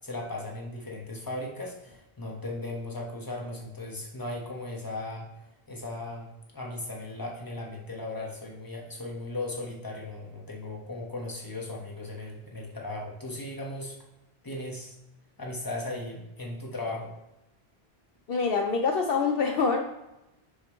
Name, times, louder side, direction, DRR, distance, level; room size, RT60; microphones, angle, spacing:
voice 1, 0.0-6.3 6.5-14.0 14.4-14.9 15.4-17.1, left 2 dB, 20° left, -1 dB, 1.3 m, -37 dB
voice 2, 18.3-19.9, left 5 dB, 65° left, 3 dB, 0.8 m, -25 dB
7.1 x 5.9 x 3.1 m, 0.92 s
omnidirectional pair, 1.1 m